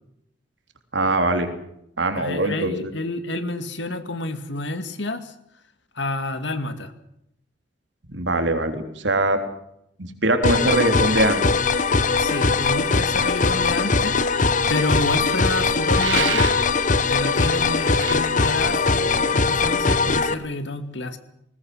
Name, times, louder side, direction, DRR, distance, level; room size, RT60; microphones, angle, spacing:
voice 1, 0.9-1.5 2.0-2.9 8.1-9.4 10.0-11.4, right 2 dB, 70° right, 6 dB, 3.5 m, -22 dB
voice 2, 2.2-5.3 6.0-6.9 12.2-14.2 14.7-16.5 17.1-21.2, left 2 dB, 70° left, 9 dB, 2.2 m, -29 dB
sound 1, 10.4-20.3, left 4 dB, 45° left, 1.1 m, -21 dB
sound 2, 15.9-16.8 17.9-18.2, right 8 dB, 90° right, 1.9 m, -28 dB
20.5 x 20.0 x 7.9 m, 0.75 s
head